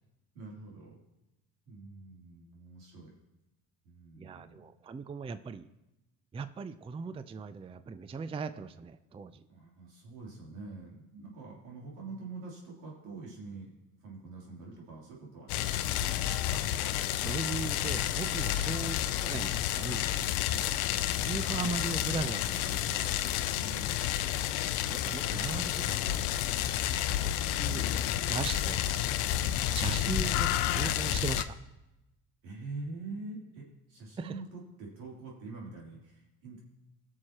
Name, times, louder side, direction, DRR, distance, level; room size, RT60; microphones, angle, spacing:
voice 1, 0.3-0.9 1.7-3.1 3.8-4.6 9.5-13.7 14.0-15.9 18.4-18.8 20.4-20.7 23.5-24.0 26.7-27.0 29.4-29.6 32.4-36.6, right 3 dB, 85° right, -4 dB, 3.3 m, -45 dB
voice 2, 4.2-5.7 6.3-9.4 16.5-16.6 17.2-20.1 21.2-23.1 25.0-26.2 27.2-28.0 28.3-28.9 29.7-31.5 34.2-34.4, right 5 dB, 15° right, 12 dB, 0.4 m, -38 dB
sound 1, 15.5-31.4, left 11 dB, 80° left, 0.6 m, -30 dB
19.0 x 6.6 x 2.9 m, 0.96 s
supercardioid pair, 75°, 42 cm